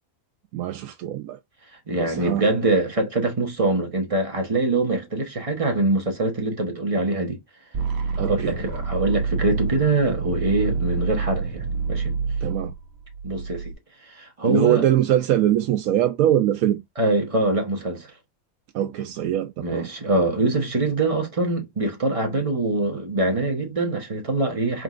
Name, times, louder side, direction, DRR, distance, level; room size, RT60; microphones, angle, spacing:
voice 1, 0.5-1.4 2.0-2.5 8.2-8.5 12.4-12.7 14.5-16.8 18.7-19.9, right 11 dB, 80° right, 1.0 m, -22 dB
voice 2, 1.9-7.4 8.2-12.1 13.2-13.7 14.1-14.8 17.0-18.1 19.6-24.8, right 2 dB, 25° right, 1.0 m, -24 dB
sound 1, 7.7-13.7, right 4 dB, 55° right, 1.0 m, -27 dB
4.4 x 3.8 x 2.4 m
omnidirectional pair, 1.5 m